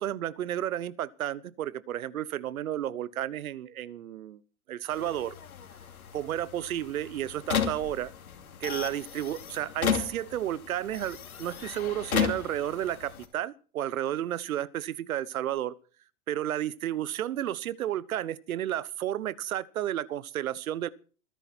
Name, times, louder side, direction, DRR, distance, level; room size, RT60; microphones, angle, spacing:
voice 1, 0.0-4.4 4.7-5.4 6.1-8.1 8.6-15.7 16.3-20.9, right 12 dB, 75° right, 1.2 m, -32 dB
sound 1, 4.9-13.2, left 8 dB, 85° left, 2.9 m, -34 dB
21.0 x 10.5 x 4.4 m
hypercardioid pair, 115°, 42 cm